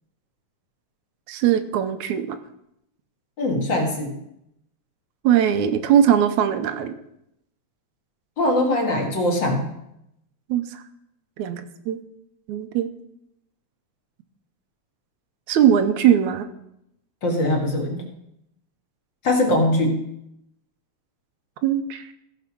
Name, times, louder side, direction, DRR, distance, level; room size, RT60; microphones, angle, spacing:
voice 1, 1.3-2.4 5.2-6.9 10.5-10.8 11.4-12.0 12.5-12.9 15.5-16.5 21.6-22.0, right 9 dB, 80° right, 9 dB, 2.1 m, -20 dB
voice 2, 3.4-4.1 8.4-9.6 17.2-18.0 19.2-20.0, left 1 dB, 45° left, 1 dB, 2.2 m, -21 dB
15.5 x 5.3 x 6.1 m, 0.80 s
omnidirectional pair, 3.4 m